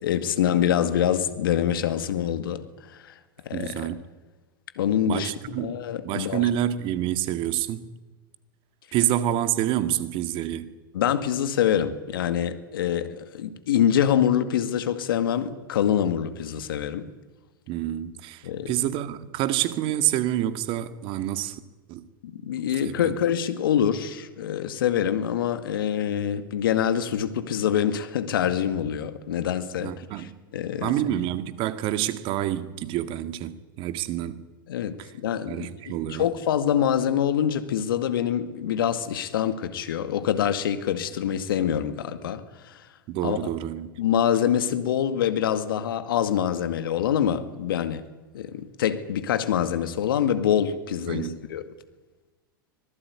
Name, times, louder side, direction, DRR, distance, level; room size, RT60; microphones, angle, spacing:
voice 1, 0.0-2.7 2.9-3.1 3.5-3.9 4.8-6.5 10.9-17.1 18.4-18.7 22.2-30.9 34.7-42.8 43.2-43.5 44.0-48.0 48.3-51.6, left 9 dB, 75° left, 2.0 m, -25 dB
voice 2, 3.5-4.0 5.0-7.9 8.9-10.7 17.7-21.6 21.9-22.0 22.8-23.2 29.8-30.3 30.8-34.4 35.0-35.1 35.5-36.3 43.1-43.9 51.1-51.4, right 12 dB, 45° right, 2.0 m, -28 dB
25.0 x 19.0 x 9.6 m
hypercardioid pair, 100°, 12 cm